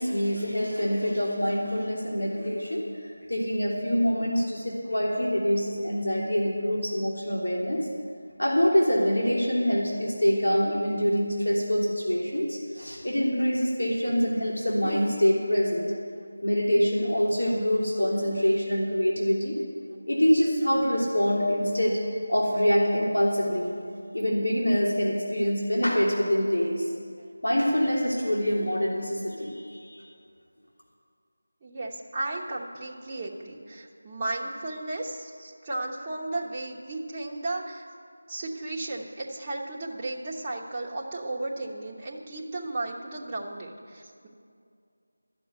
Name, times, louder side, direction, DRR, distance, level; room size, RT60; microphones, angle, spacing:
voice 1, 0.0-2.8 3.3-7.9 8.4-15.9 16.4-19.6 20.1-22.0 22.3-23.7 24.1-26.9 27.4-30.0, equal, 85° left, -4 dB, 3.1 m, -25 dB
voice 2, 31.6-37.9 38.3-44.3, right 2 dB, 20° right, -5 dB, 1.1 m, -34 dB
11.5 x 7.0 x 9.1 m, 2.3 s
figure-of-eight pair, 170°, 0 cm